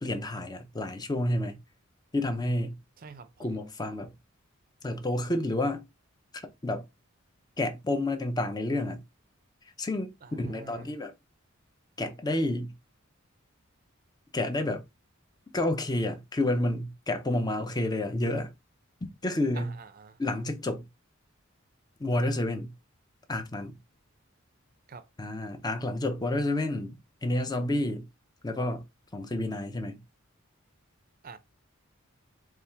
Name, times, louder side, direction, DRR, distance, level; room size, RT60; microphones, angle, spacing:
voice 1, 0.0-1.6 2.1-2.8 3.4-4.1 4.8-5.8 6.6-6.8 7.6-9.0 9.8-11.1 12.0-12.7 14.3-14.8 15.5-18.5 19.2-19.7 20.2-20.9 22.0-22.7 23.3-23.8 25.2-27.0 27.2-28.1 28.4-28.8 29.1-30.0, left 1 dB, 20° left, 0.6 m, -29 dB
voice 2, 3.0-3.5 10.2-10.9 19.5-20.2 24.9-25.1 31.2-31.4, right 4 dB, 45° right, 0.5 m, -46 dB
4.2 x 2.4 x 3.3 m
head